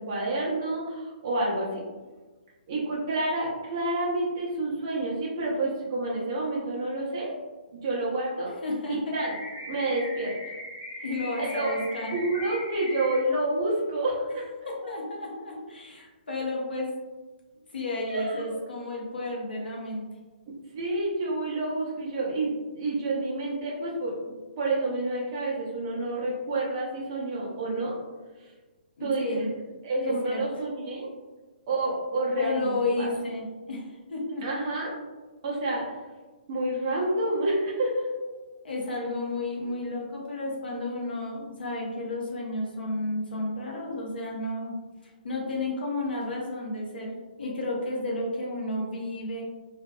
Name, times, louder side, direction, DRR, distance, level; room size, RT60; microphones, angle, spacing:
voice 1, 0.0-1.8 2.7-7.3 7.7-8.5 8.9-9.3 9.7-10.3 11.4-11.7 12.1-14.5 18.1-18.6 20.5-27.9 28.4-28.5 29.0-29.4 29.8-31.1 31.7-33.1 34.4-34.9 35.4-35.8 36.5-38.1, right 2 dB, 25° right, -5 dB, 0.5 m, -29 dB
voice 2, 8.6-9.2 11.0-12.2 14.7-17.0 17.7-20.1 29.0-29.5 30.0-30.5 32.4-34.6 38.6-44.7 45.2-49.4, left 2 dB, 80° left, -2 dB, 0.8 m, -32 dB
sound 1, 9.2-13.2, left 1 dB, 35° left, 0.8 m, -39 dB
2.5 x 2.2 x 2.2 m, 1.3 s
hypercardioid pair, 175°, 5 cm